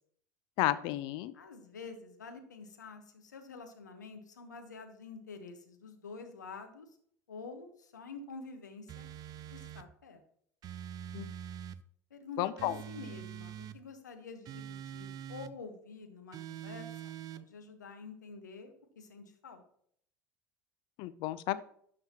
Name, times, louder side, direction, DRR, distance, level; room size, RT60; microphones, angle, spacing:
voice 1, 0.6-1.3 11.1-11.3 12.4-12.8 21.0-21.6, left 15 dB, 60° left, 15 dB, 0.6 m, -32 dB
voice 2, 1.3-6.9 7.3-9.1 9.5-10.2 12.1-19.6, left 4 dB, 85° left, 7 dB, 1.2 m, -48 dB
sound 1, 8.9-9.9 10.6-11.8 12.6-13.8 14.5-15.5 16.3-17.4, right 10 dB, 45° right, 0.5 m, -44 dB
12.0 x 6.5 x 3.0 m, 0.64 s
hypercardioid pair, 75°, 9 cm